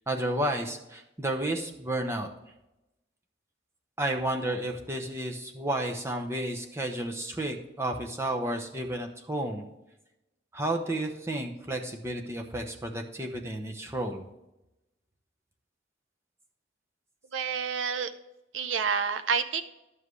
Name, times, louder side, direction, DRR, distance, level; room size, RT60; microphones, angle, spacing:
voice 1, 0.1-2.3 4.0-9.6 10.5-14.3, right 1 dB, 15° right, 2 dB, 0.9 m, -32 dB
voice 2, 17.3-18.1 18.5-19.6, right 6 dB, 75° right, 9 dB, 0.5 m, -28 dB
11.0 x 7.3 x 3.2 m, 0.93 s
head